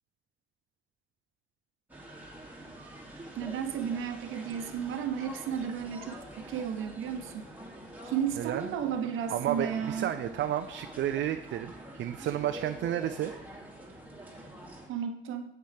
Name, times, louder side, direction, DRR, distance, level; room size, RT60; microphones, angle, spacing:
sound 1, 1.9-14.9, right 1 dB, 10° right, 2.5 m, -46 dB
voice 1, 3.3-7.5 8.0-10.1 14.9-15.4, right 8 dB, 85° right, 7 dB, 1.0 m, -33 dB
voice 2, 8.4-8.8 9.3-13.3, right 11 dB, 65° right, 8 dB, 0.5 m, -32 dB
10.5 x 7.9 x 3.4 m, 0.80 s
cardioid pair, 90°, 20 cm